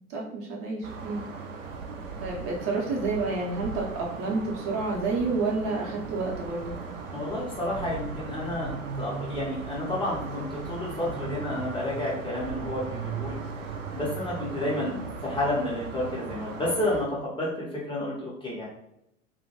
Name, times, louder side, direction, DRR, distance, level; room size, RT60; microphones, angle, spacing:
voice 1, 0.1-1.2 2.2-6.7 14.8-15.0, right 3 dB, 35° right, -2 dB, 0.7 m, -29 dB
sound 1, 0.8-17.1, right 4 dB, 70° right, 0.6 m, -37 dB
voice 2, 7.1-13.4 13.9-18.7, left 1 dB, 15° left, -6 dB, 0.6 m, -31 dB
2.1 x 2.0 x 2.8 m, 0.79 s
figure-of-eight pair, 80°, 40 cm